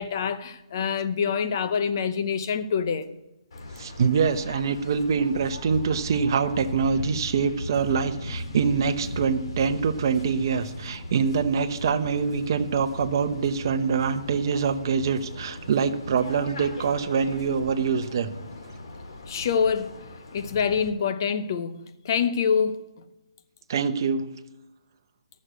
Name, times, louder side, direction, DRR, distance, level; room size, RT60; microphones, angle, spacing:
voice 1, 0.0-3.1 19.3-20.0 20.3-22.9, left 6 dB, 40° left, 0.8 m, -26 dB
Waves surf, 3.5-20.9, left 2 dB, 60° left, 2.7 m, -38 dB
voice 2, 3.8-18.3 23.7-24.3, right 6 dB, 45° right, 0.9 m, -25 dB
13.0 x 6.4 x 8.1 m
hypercardioid pair, 165°, 3 cm